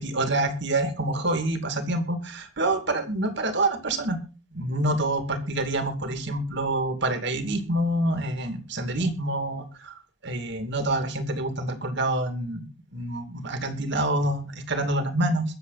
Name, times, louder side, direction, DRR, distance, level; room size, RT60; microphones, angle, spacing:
voice 1, 0.0-4.2 4.5-9.9 10.2-12.6 12.9-15.4, right 1 dB, 55° right, 8 dB, 2.5 m, -27 dB
22.0 x 7.7 x 4.1 m, 0.34 s
head